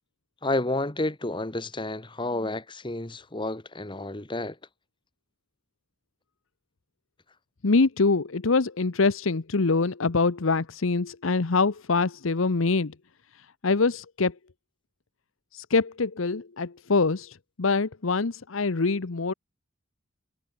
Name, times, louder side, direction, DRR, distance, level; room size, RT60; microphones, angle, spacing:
voice 1, 0.4-4.6, left 2 dB, 25° left, 1.6 m, -30 dB
voice 2, 7.6-12.9 13.4-14.3 15.5-19.3, left 4 dB, 90° left, 0.9 m, -24 dB
head